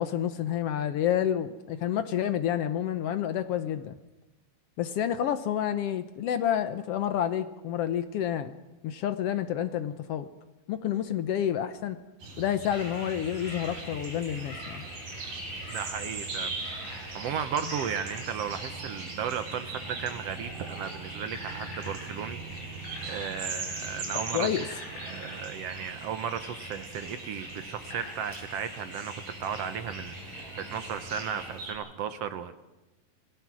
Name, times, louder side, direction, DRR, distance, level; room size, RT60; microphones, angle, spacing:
voice 1, 0.0-3.9 4.8-8.5 8.8-10.3 10.7-12.0 12.4-14.9 24.3-24.6, left 10 dB, 80° left, 11 dB, 1.3 m, -29 dB
sound 1, 12.2-31.7, right 3 dB, 85° right, 5.7 m, -41 dB
sound 2, 12.7-31.5, equal, 45° left, 8.5 m, -43 dB
voice 2, 15.7-24.5 25.0-29.1 29.4-32.5, right 8 dB, 70° right, 10 dB, 1.6 m, -35 dB
26.5 x 18.0 x 6.2 m, 1.0 s
omnidirectional pair, 3.8 m